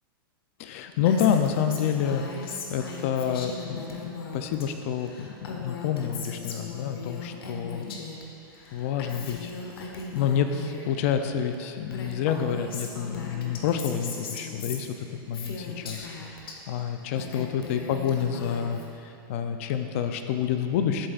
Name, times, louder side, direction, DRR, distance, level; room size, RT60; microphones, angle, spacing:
voice 1, 0.6-8.0 8.7-9.5 9.8-16.1 16.4-21.1, left 8 dB, 35° left, 7 dB, 0.4 m, -28 dB
Female speech woman speaking, 1.1-4.7 4.9-8.2 8.5-10.9 11.5-11.6 11.9-16.6 17.0-18.9, left 4 dB, 80° left, 1.1 m, -38 dB
11.5 x 7.7 x 2.4 m, 2.7 s
supercardioid pair, 170°, 12 cm